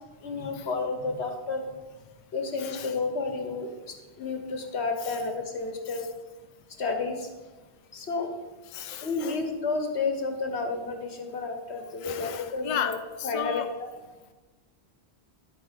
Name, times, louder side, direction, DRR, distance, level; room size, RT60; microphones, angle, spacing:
voice 1, 0.2-1.6 2.3-3.7 4.2-6.0 6.8-7.2 7.9-8.3 9.0-13.0 13.2-13.6, left 4 dB, 80° left, 4 dB, 1.6 m, -31 dB
voice 2, 2.6-2.9 5.0-5.1 8.7-9.4 12.0-13.7, left 8 dB, 40° left, 8 dB, 0.5 m, -34 dB
11.0 x 8.4 x 4.1 m, 1.2 s
omnidirectional pair, 1.1 m